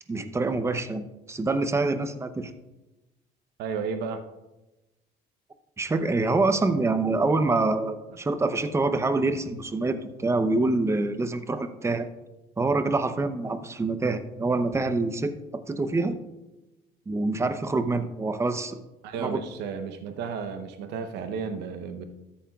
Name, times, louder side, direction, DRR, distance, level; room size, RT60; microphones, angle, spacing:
voice 1, 0.1-2.5 5.8-12.1 12.6-15.3 15.7-16.2 17.1-18.8 19.2-19.4, right 3 dB, 15° right, 10 dB, 0.7 m, -26 dB
voice 2, 3.6-4.2 19.0-22.0, right 6 dB, 85° right, 8 dB, 0.8 m, -33 dB
13.5 x 8.5 x 2.4 m, 1.0 s
cardioid pair, 110°, 17 cm